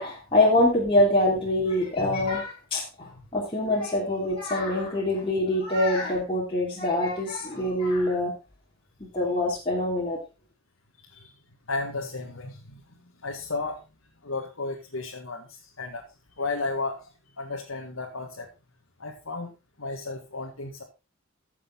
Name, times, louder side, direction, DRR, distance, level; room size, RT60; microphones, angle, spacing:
voice 1, 0.0-8.3 9.0-10.2, left 1 dB, 25° left, -5 dB, 3.0 m, -25 dB
voice 2, 11.7-12.8 13.2-13.8 14.2-16.0 16.4-17.1 17.4-18.5 19.0-20.8, left 3 dB, 80° left, -1 dB, 1.9 m, -33 dB
14.5 x 7.0 x 3.9 m, 0.28 s
head